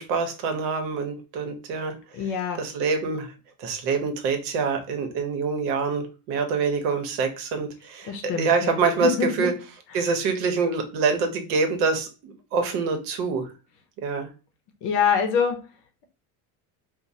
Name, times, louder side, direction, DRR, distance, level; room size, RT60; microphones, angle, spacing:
voice 1, 0.0-1.9 2.6-3.3 3.6-9.5 9.9-13.5 14.0-14.3, right 4 dB, 80° right, 6 dB, 0.8 m, -25 dB
voice 2, 2.1-2.6 8.0-9.5 9.9-10.1 14.8-15.6, left 6 dB, 60° left, 5 dB, 0.6 m, -25 dB
3.0 x 2.1 x 2.6 m, 0.32 s
cardioid pair, 140°, 45 cm